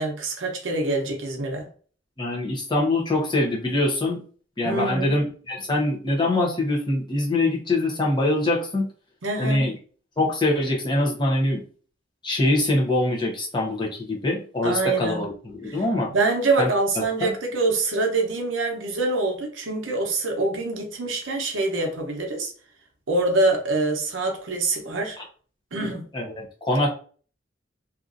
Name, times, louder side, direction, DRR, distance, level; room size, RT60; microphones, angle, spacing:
voice 1, 0.0-1.7 4.6-5.2 9.2-9.7 14.6-15.2 15.7-15.8 16.1-22.5 23.1-25.2 25.7-26.1, right 2 dB, 85° right, 0.7 m, -25 dB
voice 2, 2.2-4.2 4.6-8.9 9.4-9.7 10.2-11.6 12.2-16.1 16.6-16.7 17.2-17.3 26.1-26.9, left 2 dB, 25° left, 0.8 m, -24 dB
2.8 x 2.5 x 2.5 m
head